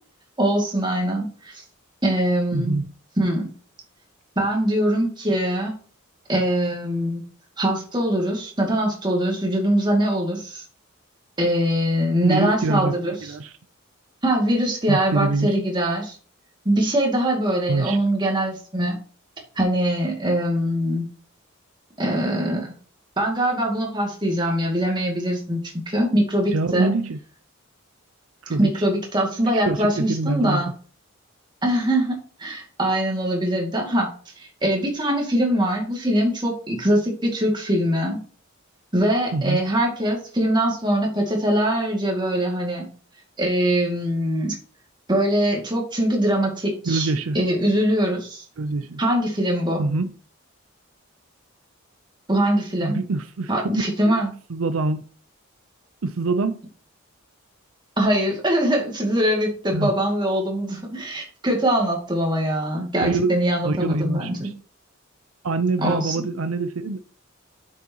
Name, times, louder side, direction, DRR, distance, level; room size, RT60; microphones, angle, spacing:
voice 1, 0.4-1.6 2.0-2.8 3.2-3.5 4.4-5.7 6.3-7.2 7.6-10.6 11.4-13.3 14.2-16.2 16.6-19.0 19.6-21.1 22.0-22.7 23.2-25.6 25.9-26.9 28.6-30.7 31.6-38.2 38.9-42.9 43.4-44.6 45.1-48.4 49.0-49.8 52.3-53.0 53.5-54.3 58.0-64.5 65.8-66.2, right 1 dB, 20° right, 2.3 m, -22 dB
voice 2, 2.5-2.9 12.2-12.9 13.2-13.5 14.9-15.5 17.7-18.0 26.5-27.2 28.4-28.7 29.6-30.6 39.3-39.6 46.9-47.4 48.6-49.0 49.8-50.1 52.8-54.1 54.5-55.0 56.0-56.6 59.7-59.9 63.0-63.4 63.6-64.5 65.4-67.0, right 3 dB, 80° right, 0.6 m, -24 dB
8.3 x 6.6 x 2.9 m
head